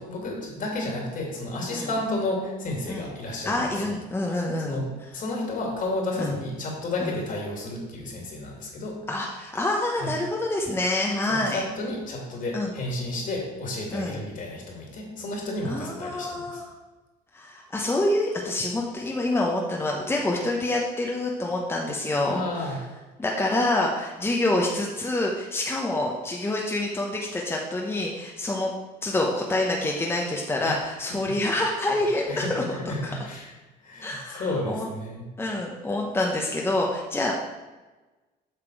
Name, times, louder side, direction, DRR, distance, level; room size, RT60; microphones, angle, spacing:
voice 1, 0.0-3.9 4.6-4.9 5.1-9.0 10.0-10.1 11.3-16.6 22.3-22.8 30.6-30.8 31.2-31.3 32.3-33.5 33.8-35.2, left 2 dB, 50° left, -1 dB, 2.6 m, -32 dB
voice 2, 3.4-4.8 6.2-6.3 7.0-7.1 9.1-11.6 12.5-12.7 13.9-14.2 15.6-16.6 17.3-22.8 23.2-28.7 29.0-33.2 34.0-34.9 35.4-37.3, left 2 dB, 15° left, -1 dB, 1.0 m, -27 dB
7.7 x 5.9 x 4.7 m, 1.2 s
cardioid pair, 110°, 17 cm